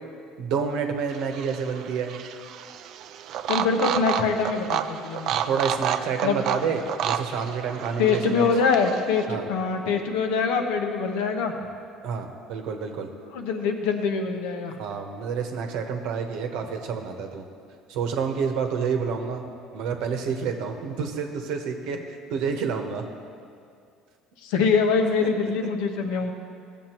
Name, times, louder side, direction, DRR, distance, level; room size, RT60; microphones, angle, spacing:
voice 1, 0.4-2.2 5.3-8.5 9.3-9.4 12.0-13.1 14.8-17.4 17.9-19.4 19.7-23.1 25.2-25.3, right 6 dB, 75° right, 4 dB, 1.0 m, -29 dB
sound 1, 1.1-9.2, right 9 dB, 60° right, 0.4 m, -31 dB
voice 2, 3.5-5.3 6.2-6.4 8.0-11.5 13.3-14.7 24.4-26.5, left 5 dB, 90° left, 4 dB, 0.9 m, -24 dB
15.5 x 7.2 x 3.0 m, 2.3 s
cardioid pair, 120°, 0 cm